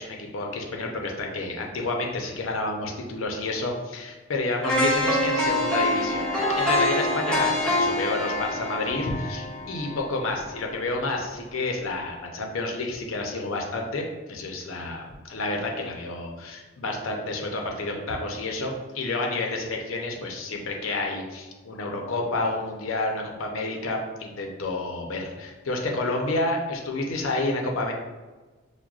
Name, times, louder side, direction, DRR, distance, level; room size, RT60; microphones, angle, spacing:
voice 1, 0.0-27.9, left 2 dB, 80° left, 1 dB, 0.6 m, -30 dB
sound 1, 4.6-10.6 11.0-11.2, left 1 dB, 5° left, 0.6 m, -25 dB
5.9 x 2.2 x 2.4 m, 1.3 s
head